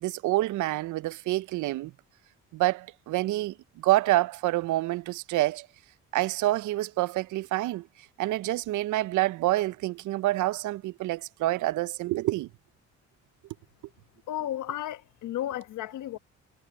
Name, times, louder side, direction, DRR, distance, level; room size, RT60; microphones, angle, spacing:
voice 1, 0.0-1.9 2.5-5.7 6.1-7.8 8.2-12.5, right 17 dB, 75° right, 0.5 m, -27 dB
voice 2, 14.3-16.2, left 12 dB, 80° left, 1.3 m, -33 dB
cardioid pair, 90°, 30 cm